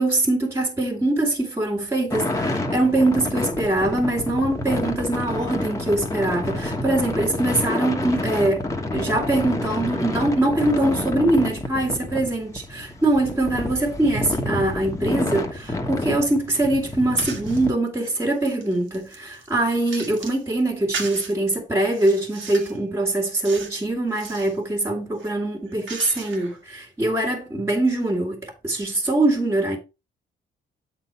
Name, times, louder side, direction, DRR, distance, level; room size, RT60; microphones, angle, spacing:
voice 1, 0.0-29.8, right 2 dB, 15° right, 1.8 m, -23 dB
sound 1, 2.1-17.7, left 2 dB, 15° left, 1.3 m, -29 dB
sound 2, 17.2-17.7 18.2-20.4 20.9-21.3 21.9-22.8 23.4-23.8 24.1-24.6 25.1-26.6, right 5 dB, 75° right, 1.7 m, -37 dB
8.1 x 4.0 x 4.2 m
cardioid pair, 90°, 20 cm